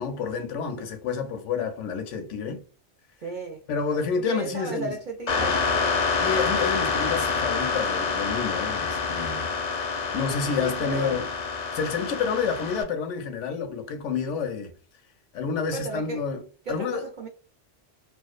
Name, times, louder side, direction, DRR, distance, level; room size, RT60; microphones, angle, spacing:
voice 1, 0.0-2.6 3.7-5.0 6.2-9.5 9.9-11.2 11.7-14.7 15.3-16.4 16.7-17.0, left 5 dB, 80° left, 0.9 m, -29 dB
voice 2, 3.2-3.6 4.3-6.0 10.4-11.2 15.7-16.2 16.7-17.3, right 3 dB, 55° right, 0.5 m, -34 dB
sound 1, 5.3-12.8, left 5 dB, 50° left, 0.5 m, -27 dB
2.4 x 2.2 x 2.3 m
omnidirectional pair, 1.2 m